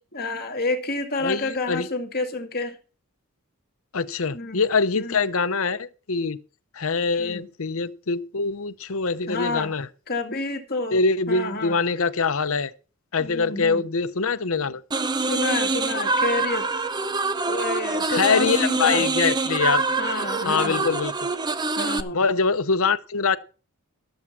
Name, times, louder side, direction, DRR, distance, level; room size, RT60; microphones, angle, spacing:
voice 1, 0.1-2.8 4.3-4.6 4.9-5.2 7.2-7.5 9.3-9.7 10.1-11.0 11.3-11.8 13.2-13.9 15.2-16.7 17.4-19.1 20.0-20.9 21.8-22.2, left 3 dB, 45° left, 2.2 m, -29 dB
voice 2, 1.2-1.9 3.9-6.4 6.7-9.9 10.9-12.7 13.1-14.8 18.1-19.8 20.4-21.1 22.1-23.4, left 4 dB, 65° left, 0.8 m, -24 dB
sound 1, 14.9-22.0, right 3 dB, 20° right, 0.6 m, -25 dB
14.0 x 7.2 x 5.9 m
head